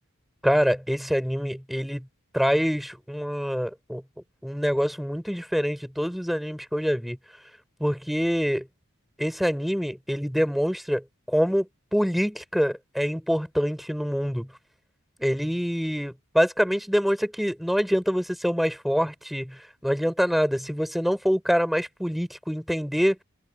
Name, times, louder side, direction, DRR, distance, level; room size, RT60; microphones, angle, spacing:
voice 1, 0.4-2.1 2.3-4.0 4.4-7.2 7.8-8.7 9.2-14.5 15.2-23.2, equal, ahead, 5.9 m, -25 dB
head